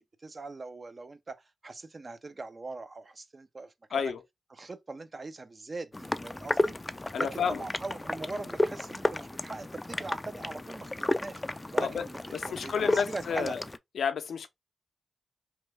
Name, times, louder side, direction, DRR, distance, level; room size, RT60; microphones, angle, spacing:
voice 1, 0.0-4.1 4.5-6.7 7.2-11.4 11.7-13.6, right 3 dB, 45° right, 0.5 m, -41 dB
sound 1, 5.9-13.8, left 2 dB, 25° left, 0.3 m, -32 dB
voice 2, 7.1-7.6 11.8-12.0 12.3-13.6 14.0-14.5, left 6 dB, 80° left, 0.5 m, -30 dB
3.0 x 2.3 x 3.2 m
cardioid pair, 60°, 0 cm